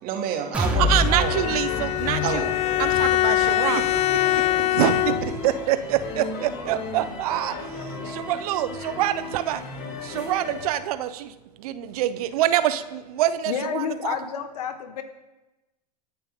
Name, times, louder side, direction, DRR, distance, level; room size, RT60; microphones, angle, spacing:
voice 1, 0.0-1.4 2.2-2.5 2.9-3.1 3.7-3.8 4.1-4.5, right 8 dB, 45° right, 3 dB, 2.9 m, -30 dB
sound 1, 0.5-8.3 8.7-8.9 9.3-9.4, left 2 dB, 5° right, 3.1 m, -31 dB
sound 2, 0.6-10.7, left 4 dB, 50° left, 4.3 m, -35 dB
voice 2, 0.8-2.5 2.8-3.9 4.7-9.6 10.0-14.1, right 12 dB, 60° right, 12 dB, 1.0 m, -26 dB
Bowed string instrument, 1.0-5.5, left 15 dB, 30° left, 0.4 m, -23 dB
voice 3, 13.5-15.0, left 7 dB, 70° left, 8 dB, 1.7 m, -29 dB
26.0 x 10.5 x 3.9 m, 1.0 s
hypercardioid pair, 90°, 21 cm